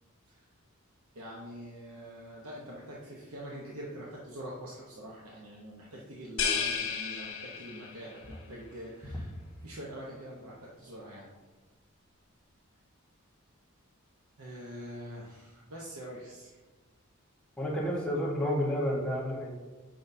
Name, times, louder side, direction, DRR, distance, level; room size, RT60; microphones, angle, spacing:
voice 1, 1.1-9.3 9.6-11.3 14.4-16.6, equal, 85° right, -4 dB, 1.0 m, -44 dB
sound 1, 6.4-8.1, left 6 dB, 75° left, 1.3 m, -32 dB
voice 2, 17.6-19.5, equal, 5° left, -5 dB, 1.2 m, -30 dB
7.6 x 5.5 x 2.7 m, 1.2 s
head